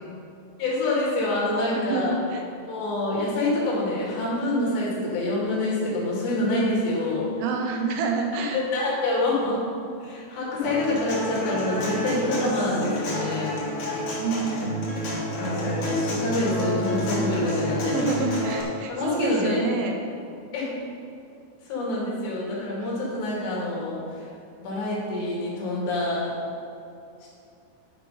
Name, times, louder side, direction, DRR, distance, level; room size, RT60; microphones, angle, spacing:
voice 1, 0.6-2.2 2.7-7.3 8.4-9.6 10.0-13.6 15.4-18.1 18.9-19.6 20.5-20.7 21.7-24.3 24.6-26.4 27.2-27.3, left 2 dB, 75° left, -6 dB, 4.4 m, -26 dB
voice 2, 1.7-2.4 7.4-8.6 14.2-14.8 17.9-20.0, right 4 dB, 80° right, 2 dB, 2.8 m, -28 dB
Human voice / Acoustic guitar, 10.6-18.6, equal, 55° left, 3.4 m, -29 dB
11.0 x 5.8 x 5.5 m, 2.6 s
omnidirectional pair, 5.0 m